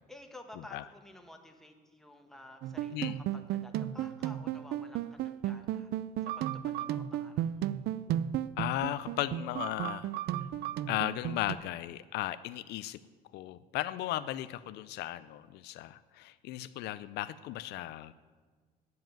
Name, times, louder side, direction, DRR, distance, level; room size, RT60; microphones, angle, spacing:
voice 1, 0.1-5.9 6.2-7.7, left 1 dB, ahead, 4 dB, 1.3 m, -53 dB
sound 1, 2.6-11.6, right 11 dB, 70° right, 0.4 m, -34 dB
voice 2, 8.6-10.1 10.9-13.0 13.3-18.1, left 14 dB, 80° left, 14 dB, 0.4 m, -36 dB
9.3 x 7.7 x 9.0 m, 1.5 s
cardioid pair, 110°, 17 cm